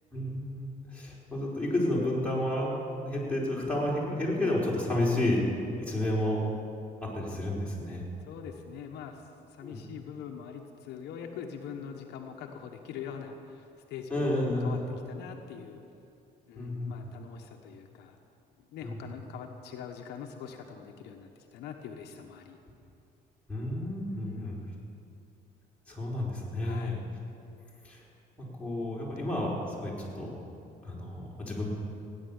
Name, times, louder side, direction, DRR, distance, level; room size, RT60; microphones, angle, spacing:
voice 1, 0.1-5.4 5.8-6.4 7.0-8.0 9.6-9.8 14.1-14.8 15.1-15.2 16.5-17.1 18.8-19.0 23.5-24.6 25.9-26.9 27.8-28.0 28.4-29.5 29.8-30.3 30.8-31.7, left 1 dB, 5° left, -6 dB, 4.6 m, -31 dB
voice 2, 8.3-9.2 9.5-14.3 14.6-14.8 15.1-15.8 16.5-18.2 18.6-22.6 24.1-24.8 26.6-27.0, left 7 dB, 85° left, 3 dB, 1.2 m, -43 dB
16.5 x 10.0 x 7.2 m, 2.7 s
cardioid pair, 110°, 17 cm